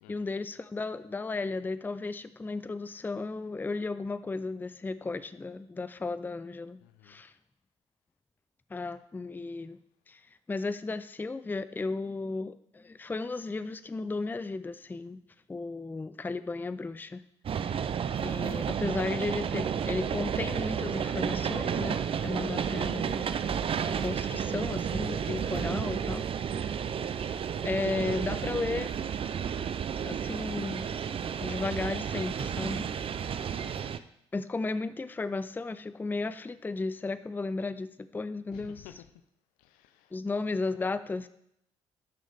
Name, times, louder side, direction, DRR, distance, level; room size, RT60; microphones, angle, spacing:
voice 1, 0.1-7.3 8.7-9.8 10.1-10.2 10.5-15.2 15.5-17.2 17.5-17.8 18.2-23.3 23.8-26.8 27.6-28.9 30.0-30.9 31.4-32.9 34.3-38.9 40.1-41.3, left 3 dB, 15° left, 13 dB, 0.4 m, -34 dB
voice 2, 6.8-7.2 17.5-17.9 33.0-33.8 38.5-39.1 39.6-40.1, left 11 dB, 70° left, 11 dB, 0.6 m, -54 dB
sound 1, 17.4-34.0, right 8 dB, 40° right, 0.5 m, -32 dB
10.5 x 6.3 x 3.5 m, 0.75 s
figure-of-eight pair, 45°, 15 cm